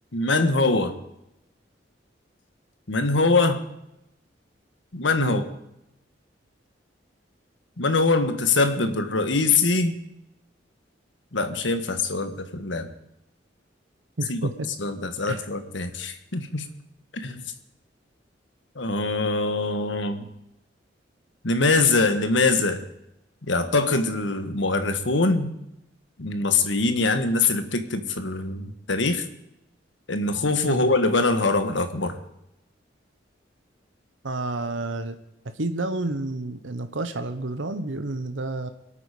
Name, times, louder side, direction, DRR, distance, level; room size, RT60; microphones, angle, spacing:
voice 1, 0.1-0.9 2.9-3.7 4.9-5.4 7.8-9.9 11.3-12.9 14.3-14.5 14.8-16.6 17.1-17.4 18.7-20.3 21.4-22.8 23.5-25.5 26.2-29.2 30.1-32.1, left 3 dB, 75° left, 9 dB, 1.4 m, -23 dB
voice 2, 14.2-14.7 15.3-15.5 30.6-30.9 34.2-35.2 35.6-38.7, right 2 dB, 85° right, 9 dB, 1.1 m, -30 dB
25.5 x 8.8 x 5.0 m, 0.85 s
head